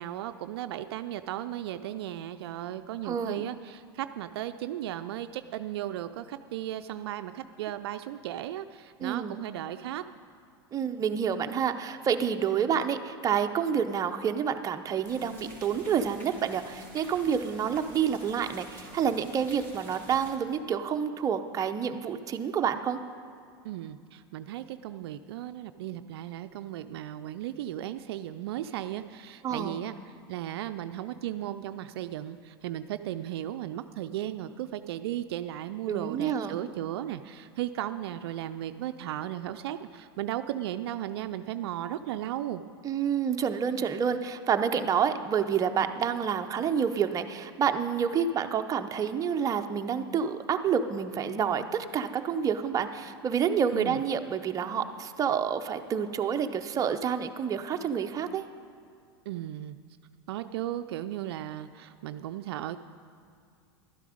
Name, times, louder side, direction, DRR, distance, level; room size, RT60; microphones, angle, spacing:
voice 1, 0.0-10.0 23.6-29.9 30.3-42.6 53.7-54.0 59.3-59.8 60.3-62.8, right 12 dB, 70° right, 10 dB, 0.4 m, -36 dB
voice 2, 3.0-3.5 9.0-9.4 10.7-23.0 29.4-29.8 35.9-36.6 42.8-51.6 51.9-58.4, right 7 dB, 25° right, 6 dB, 0.6 m, -28 dB
sound 1, 15.0-20.3, right 1 dB, 15° left, 2.7 m, -49 dB
12.0 x 10.0 x 5.0 m, 2.3 s
hypercardioid pair, 105°, 13 cm